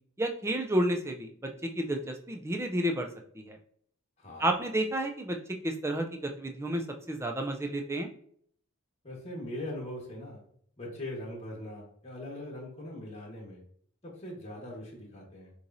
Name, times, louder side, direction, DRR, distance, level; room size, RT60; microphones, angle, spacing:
voice 1, 0.2-3.1 3.3-3.6 4.4-5.4 5.6-8.1, right 1 dB, 10° right, 4 dB, 0.4 m, -31 dB
voice 2, 4.2-4.5 9.0-10.4 10.8-13.6 14.0-15.5, left 1 dB, 30° left, -2 dB, 1.4 m, -41 dB
6.6 x 3.0 x 2.6 m, 0.63 s
head